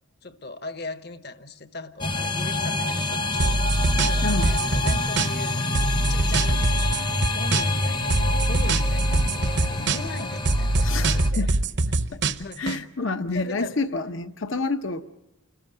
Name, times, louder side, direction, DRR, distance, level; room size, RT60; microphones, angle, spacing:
voice 1, 0.2-3.6 3.9-6.9 7.3-11.6 12.4-13.8, left 2 dB, 50° left, 10 dB, 1.1 m, -39 dB
sound 1, 2.0-11.3, left 2 dB, 20° left, 0.8 m, -27 dB
sound 2, 3.4-5.5 5.7-7.8 8.1-10.2 10.4-12.8, right 2 dB, 55° right, 0.8 m, -23 dB
voice 2, 10.8-11.5 12.1-12.2 12.6-15.0, left 3 dB, 65° left, 9 dB, 0.9 m, -28 dB
29.5 x 14.5 x 9.2 m, 0.91 s
head